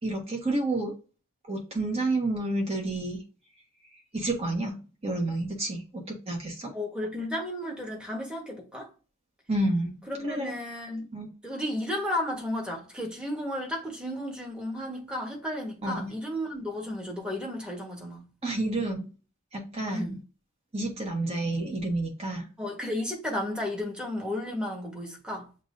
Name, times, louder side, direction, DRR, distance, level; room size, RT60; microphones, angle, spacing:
voice 1, 0.0-0.9 1.5-3.2 4.1-6.7 9.5-10.0 10.2-10.5 11.1-11.3 15.8-16.1 18.4-19.1 19.5-20.2 20.7-22.5, right 2 dB, 30° right, 1.4 m, -30 dB
voice 2, 6.7-8.9 10.1-11.1 11.4-18.3 19.9-20.2 22.6-25.5, left 1 dB, 5° right, 1.4 m, -33 dB
7.3 x 2.7 x 2.6 m
head